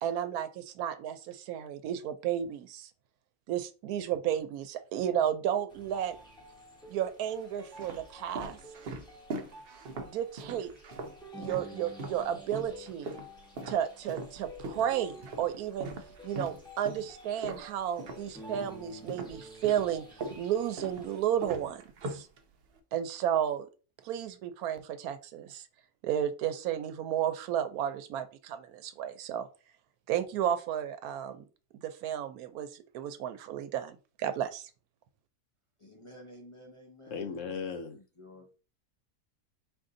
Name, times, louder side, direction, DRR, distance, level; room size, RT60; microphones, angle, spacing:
voice 1, 0.0-2.9 3.5-6.2 6.9-8.6 10.0-10.7 11.4-13.1 13.7-15.9 16.2-21.8 22.1-22.3 22.9-23.7 24.0-25.7 26.0-29.5 30.1-31.4 31.8-34.7, right 10 dB, 80° right, 1.1 m, -33 dB
sound 1, 5.7-21.2, equal, 5° left, 1.0 m, -51 dB
sound 2, 5.7-6.4 7.1-12.2 12.5-18.8 19.1-22.8, right 2 dB, 55° right, 0.6 m, -41 dB
voice 2, 35.8-37.4 37.6-38.5, equal, 35° left, 0.5 m, -52 dB
voice 3, 37.1-38.0, left 5 dB, 65° left, 0.8 m, -36 dB
4.4 x 2.6 x 3.7 m
omnidirectional pair, 1.6 m